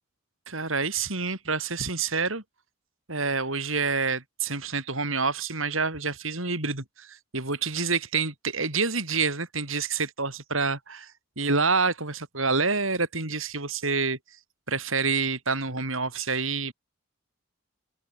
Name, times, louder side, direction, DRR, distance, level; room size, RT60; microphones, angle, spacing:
voice 1, 0.5-2.4 3.1-14.2 14.7-16.7, right 4 dB, 75° right, 6.6 m, -27 dB
head